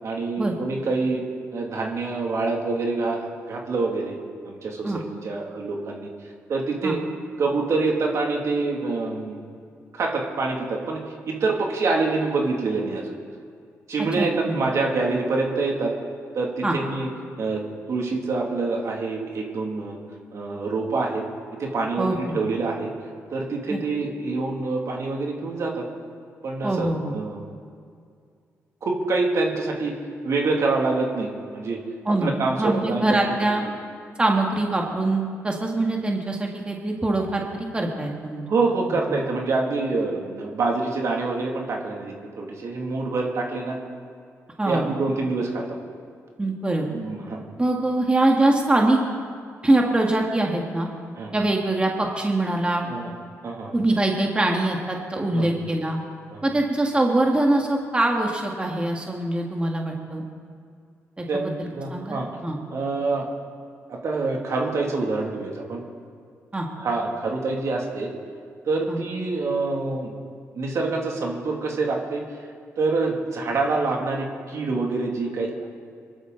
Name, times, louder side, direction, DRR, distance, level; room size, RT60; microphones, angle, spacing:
voice 1, 0.0-1.2 1.5-4.2 4.4-6.1 6.5-7.0 7.4-9.4 9.9-11.0 11.3-13.1 13.9-15.9 16.3-17.1 17.4-17.6 17.9-20.0 20.3-21.2 21.6-22.9 23.3-25.8 26.4-27.4 28.8-30.0 30.2-31.8 32.2-33.2 38.5-43.8 44.7-45.6 46.9-47.4 51.2-51.3 52.9-53.1 53.4-53.8 55.3-55.5 56.3-56.5 61.3-62.3 62.7-63.3 63.9-65.8 66.8-68.1 68.7-70.2 70.5-72.2 72.8-75.7, right 3 dB, 60° right, 0 dB, 2.6 m, -26 dB
voice 2, 14.1-14.6 16.6-16.8 22.0-22.4 23.7-23.8 26.6-27.1 32.1-32.3 32.6-33.6 34.2-38.5 39.1-39.2 44.6-44.8 46.4-46.9 47.6-49.0 49.6-50.9 51.3-52.9 53.7-56.0 56.4-60.3 61.2-62.6 66.5-66.7 68.9-69.0, right 2 dB, 20° right, 0 dB, 2.0 m, -23 dB
23.5 x 12.0 x 4.1 m, 2.3 s
cardioid pair, 75°, 6 cm